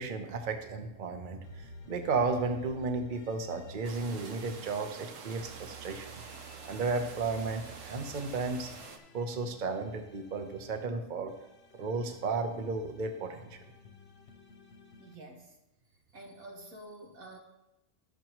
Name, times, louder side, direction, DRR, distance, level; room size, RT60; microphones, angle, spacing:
voice 1, 0.0-6.2 6.6-8.7 9.1-11.3 11.8-13.6, right 4 dB, 40° right, 5 dB, 0.8 m, -34 dB
sound 1, 1.4-4.9 5.3-10.8 11.3-15.1, equal, 55° left, 1.0 m, -52 dB
sound 2, 3.8-9.0, right 5 dB, 70° right, 1.2 m, -47 dB
voice 2, 15.0-15.6 16.1-17.4, right 1 dB, 90° right, 1 dB, 1.8 m, -48 dB
12.5 x 6.8 x 3.0 m, 0.92 s
omnidirectional pair, 1.4 m